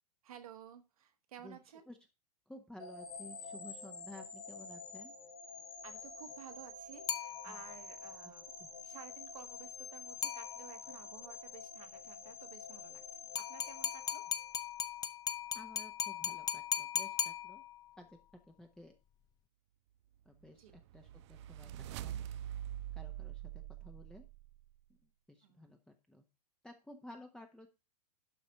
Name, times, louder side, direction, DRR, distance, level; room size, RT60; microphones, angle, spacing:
voice 1, 0.2-1.9 5.8-8.5 8.8-14.2 20.6-20.7 25.4-25.7, right 9 dB, 65° right, 6 dB, 1.5 m, -54 dB
voice 2, 2.5-5.1 7.5-7.6 8.2-8.3 8.6-8.7 15.5-17.6 18.0-18.1 18.5-18.9 20.2-22.2 22.9-24.3 25.3-25.8 26.1-26.2 26.6-27.7, left 1 dB, 5° left, 4 dB, 1.0 m, -54 dB
sound 1, 2.8-14.9, left 4 dB, 65° left, 3.2 m, -49 dB
sound 2, 7.1-7.9 10.2-11.0 13.4-18.0, left 9 dB, 20° left, 0.6 m, -38 dB
sound 3, 20.4-24.7, right 12 dB, 45° right, 0.4 m, -44 dB
11.5 x 4.1 x 5.4 m, 0.29 s
figure-of-eight pair, 100°, 20 cm